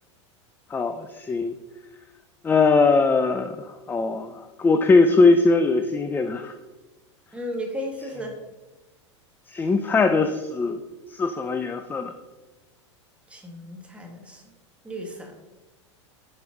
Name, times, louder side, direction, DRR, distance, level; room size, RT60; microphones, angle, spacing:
voice 1, 0.7-1.6 2.4-6.5 9.5-10.8 11.1-12.1, left 3 dB, 15° left, 8 dB, 0.4 m, -21 dB
voice 2, 7.3-8.3 13.3-14.4 14.8-15.3, equal, 10° right, 2 dB, 1.5 m, -34 dB
5.9 x 5.4 x 4.5 m, 1.2 s
hypercardioid pair, 100°, 16 cm